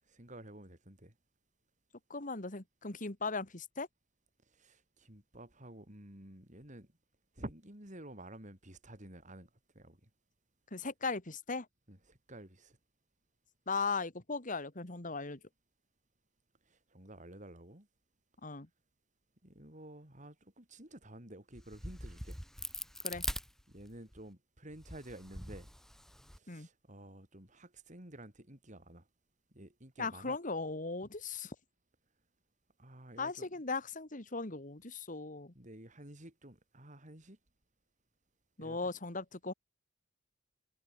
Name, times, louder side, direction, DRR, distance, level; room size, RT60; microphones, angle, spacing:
voice 1, 0.1-1.1 4.5-6.9 7.3-9.5 9.8-10.1 11.9-12.8 16.7-17.9 19.4-22.4 23.7-25.7 26.3-29.1 29.5-30.4 32.8-33.5 35.5-37.4 38.6-38.9, right 1 dB, 40° right, 5.2 m, -51 dB
voice 2, 2.1-3.9 10.7-11.7 13.7-15.4 18.4-18.7 23.0-23.2 26.5-26.7 30.0-31.6 33.2-35.5 38.6-39.5, left 4 dB, 40° left, 2.1 m, -38 dB
Crack, 21.5-24.2 24.7-26.4, equal, ahead, 3.7 m, -42 dB
head